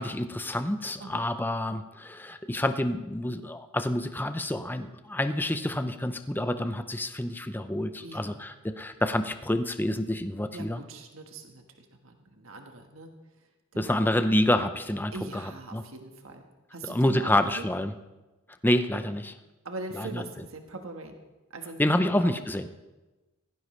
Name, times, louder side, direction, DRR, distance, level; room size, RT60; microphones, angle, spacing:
voice 1, 0.0-10.8 13.8-15.4 15.7-15.8 16.8-17.9 18.6-19.3 19.9-20.2 21.8-22.7, left 1 dB, 10° left, 9 dB, 0.6 m, -28 dB
voice 2, 8.0-8.4 10.5-13.1 13.7-14.3 15.1-16.4 16.7-17.7 19.6-21.2 21.5-22.3, right 2 dB, 75° right, 4 dB, 1.4 m, -42 dB
17.0 x 15.0 x 3.2 m, 1.1 s
head